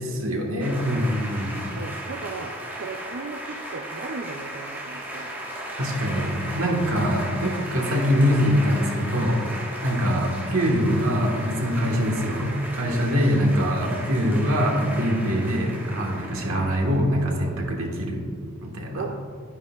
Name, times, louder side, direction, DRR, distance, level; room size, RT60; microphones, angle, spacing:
voice 1, 0.0-1.7 5.7-9.4 9.8-18.2 18.6-19.0, equal, 80° right, 0 dB, 1.6 m, -23 dB
sound 1, 0.6-17.1, right 1 dB, 10° right, 1.4 m, -36 dB
voice 2, 1.7-5.3 10.0-10.2 13.2-13.4 16.5-16.7 19.0-19.1, right 4 dB, 60° right, 3 dB, 0.5 m, -36 dB
11.0 x 9.6 x 2.4 m, 2.1 s
head